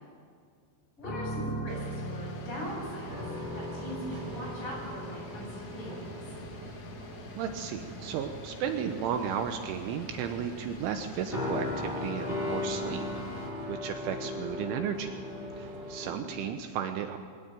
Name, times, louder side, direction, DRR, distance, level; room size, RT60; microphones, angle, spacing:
voice 1, 1.0-3.2 3.5-6.2 16.0-16.3, equal, 25° left, -3 dB, 8.9 m, -41 dB
sound 1, 1.0-7.1 7.5-7.7 8.7-9.4 11.3-16.5, left 1 dB, 10° left, 4.4 m, -37 dB
sound 2, 1.7-13.5, left 2 dB, 75° left, 4.8 m, -46 dB
sound 3, 2.6-16.2, right 4 dB, 60° right, 2.3 m, -49 dB
voice 2, 7.3-15.2 15.6-17.2, right 8 dB, 75° right, 7 dB, 3.1 m, -34 dB
21.5 x 19.0 x 9.0 m, 2.1 s
omnidirectional pair, 6.0 m